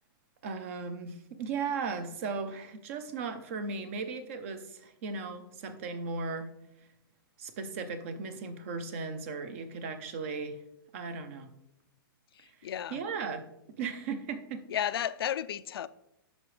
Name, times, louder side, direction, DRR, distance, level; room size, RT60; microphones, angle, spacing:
voice 1, 0.4-6.5 7.4-10.6 10.9-11.5 12.9-13.4 13.8-14.6, right 4 dB, 35° right, 10 dB, 0.7 m, -36 dB
voice 2, 12.3-13.0 14.7-15.9, left 10 dB, 80° left, 15 dB, 0.4 m, -33 dB
10.5 x 6.1 x 3.2 m, 0.84 s
hypercardioid pair, 175°, 12 cm